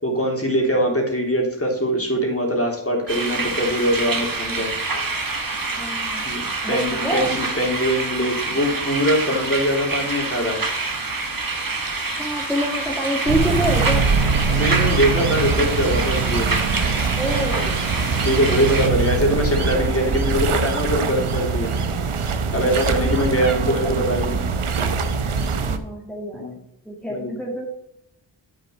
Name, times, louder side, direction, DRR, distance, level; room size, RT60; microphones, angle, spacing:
voice 1, 0.0-4.7 6.2-6.4 6.7-10.6 14.5-16.5 18.2-21.7 22.5-24.4 26.3-26.5 27.1-27.3, equal, 30° left, -1 dB, 3.2 m, -22 dB
sound 1, 3.1-18.9, right 3 dB, 40° right, 1.4 m, -27 dB
voice 2, 5.8-6.2 6.6-7.3 12.2-14.1 17.2-17.8 22.9-23.2 23.6-24.2 25.7-27.6, equal, ahead, -2 dB, 1.9 m, -27 dB
sound 2, 13.3-25.8, right 5 dB, 85° right, 0.9 m, -23 dB
8.2 x 6.5 x 4.5 m, 0.78 s
wide cardioid pair, 45°, 49 cm